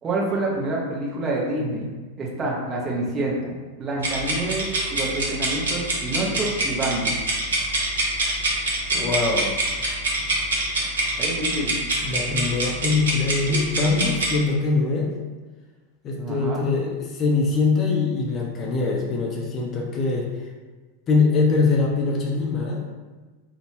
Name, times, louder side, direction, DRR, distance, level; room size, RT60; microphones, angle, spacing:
voice 1, 0.0-1.9 2.2-3.4 3.8-7.1 11.2-11.8 16.2-16.7, right 2 dB, 25° right, -3 dB, 0.6 m, -27 dB
sound 1, 4.0-14.4, right 2 dB, 65° right, 0.6 m, -25 dB
voice 2, 8.9-9.5 12.0-15.1 16.0-20.3 21.1-22.8, left 3 dB, 30° left, -1 dB, 0.4 m, -23 dB
2.6 x 2.0 x 3.0 m, 1.3 s
figure-of-eight pair, 90°, 0 cm